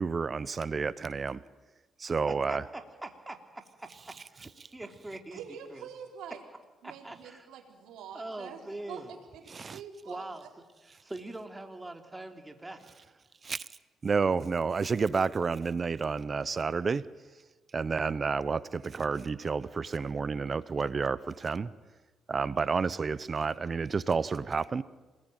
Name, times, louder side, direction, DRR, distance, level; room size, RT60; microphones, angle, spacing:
voice 1, 0.0-1.4 2.0-2.6 9.5-9.8 13.4-13.7 14.0-17.0 17.7-21.7 22.3-24.8, right 5 dB, 35° right, 17 dB, 0.8 m, -30 dB
voice 2, 2.3-5.4 5.7-5.9 6.8-7.5 8.1-9.1 10.0-10.5 10.8-12.8, right 2 dB, 15° right, 5 dB, 3.1 m, -43 dB
voice 3, 5.3-6.4 6.8-8.6 8.9-10.2, right 7 dB, 85° right, 1 dB, 4.3 m, -45 dB
27.5 x 20.5 x 9.1 m, 1.2 s
cardioid pair, 90°, 0 cm